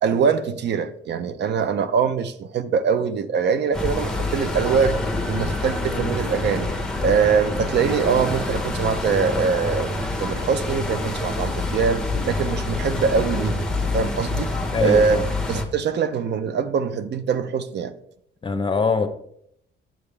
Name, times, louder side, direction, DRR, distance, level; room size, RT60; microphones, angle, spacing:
voice 1, 0.0-5.0 5.3-6.7 7.0-9.9 10.2-14.5 14.8-15.2 15.5-17.9, right 6 dB, 60° right, 0.6 m, -23 dB
sound 1, 3.7-15.6, left 2 dB, 5° left, 1.1 m, -26 dB
voice 2, 14.7-15.2 18.4-19.1, left 4 dB, 25° left, 0.8 m, -22 dB
7.5 x 6.9 x 3.3 m
cardioid pair, 90°, 20 cm